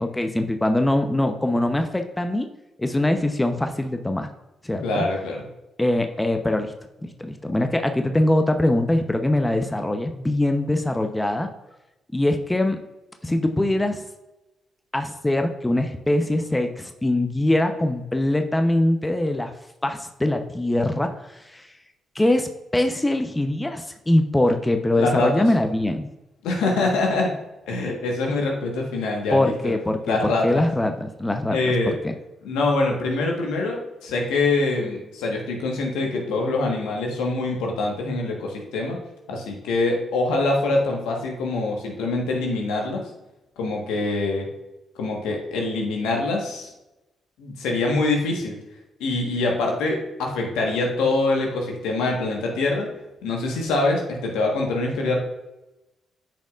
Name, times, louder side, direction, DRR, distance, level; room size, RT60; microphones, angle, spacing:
voice 1, 0.0-2.5 2.8-4.3 4.6-5.0 5.8-6.7 7.0-11.5 12.1-12.8 13.2-14.0 14.9-19.5 19.8-21.7 22.1-26.1 29.3-32.1, left 1 dB, 15° left, 6 dB, 0.7 m, -23 dB
voice 2, 4.8-5.4 25.0-25.4 26.4-27.3 27.7-29.7 30.1-30.6 31.5-31.9 32.4-39.0 39.3-43.0 43.6-44.5 45.0-46.7 47.4-48.6 49.0-52.9 53.2-55.2, left 2 dB, 80° left, 0 dB, 1.3 m, -24 dB
8.9 x 5.2 x 2.5 m, 0.96 s
hypercardioid pair, 45°, 0 cm